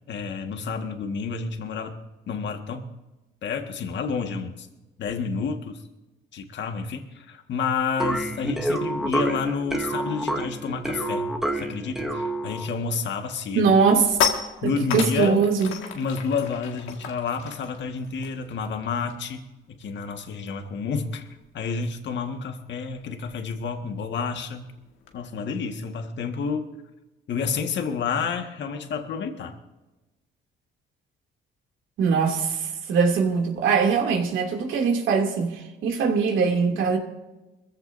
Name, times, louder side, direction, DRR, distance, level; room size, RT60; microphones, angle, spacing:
voice 1, 0.1-2.0 2.3-2.9 3.4-4.7 5.0-5.8 6.3-13.7 14.6-15.5 15.9-21.3 21.5-24.7 25.1-26.7 27.3-29.6, left 5 dB, 65° left, 5 dB, 1.7 m, -30 dB
sound 1, 8.0-12.8, right 1 dB, ahead, 1.6 m, -28 dB
sound 2, 12.8-13.1 13.4-19.4 19.6-19.9 20.2-25.2, left 7 dB, 90° left, 1.9 m, -34 dB
voice 2, 13.5-14.2 14.6-15.7 32.0-37.0, right 5 dB, 80° right, 1 dB, 2.7 m, -22 dB
22.0 x 15.0 x 2.7 m, 1.1 s
cardioid pair, 90°, 20 cm